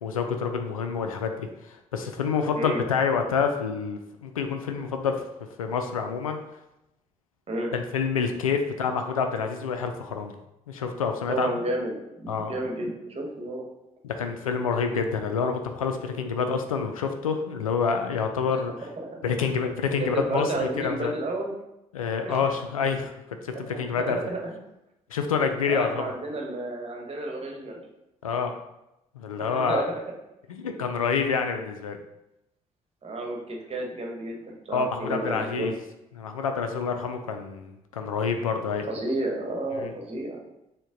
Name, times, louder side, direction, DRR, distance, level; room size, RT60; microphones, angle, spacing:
voice 1, 0.0-5.3 5.6-6.4 7.7-10.4 10.7-11.6 12.3-12.5 14.0-18.9 19.2-21.1 21.9-23.1 23.4-24.2 25.1-26.1 28.2-28.5 29.2-29.8 30.5-32.0 34.7-35.7 36.1-38.9 39.8-39.9, left 5 dB, 85° left, 6 dB, 0.4 m, -27 dB
voice 2, 11.3-13.6 19.0-19.2 20.0-21.5 22.2-22.5 23.5-24.5 25.6-27.8 29.4-29.9 33.0-35.7 38.8-40.4, right 2 dB, 35° right, 1 dB, 1.2 m, -31 dB
6.2 x 2.2 x 3.8 m, 0.89 s
figure-of-eight pair, 45°, 17 cm